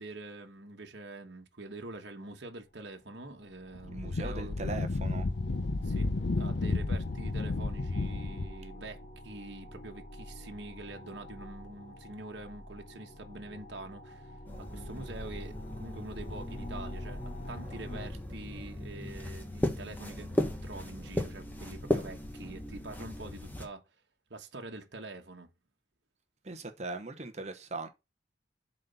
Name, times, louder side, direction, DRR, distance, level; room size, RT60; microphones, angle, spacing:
voice 1, 0.0-4.6 5.8-9.0 9.2-17.2 17.5-23.8 24.3-25.5, right 2 dB, 60° right, 1.4 m, -45 dB
sound 1, 2.7-2.8 3.0-18.1, left 1 dB, 40° left, 1.0 m, -47 dB
Wind, 3.7-8.6, left 3 dB, 60° left, 0.6 m, -32 dB
voice 2, 3.9-5.3 26.4-27.9, right 3 dB, 35° right, 1.0 m, -39 dB
sound 2, 14.5-23.7, left 1 dB, 10° left, 1.2 m, -37 dB
7.4 x 4.2 x 5.5 m
head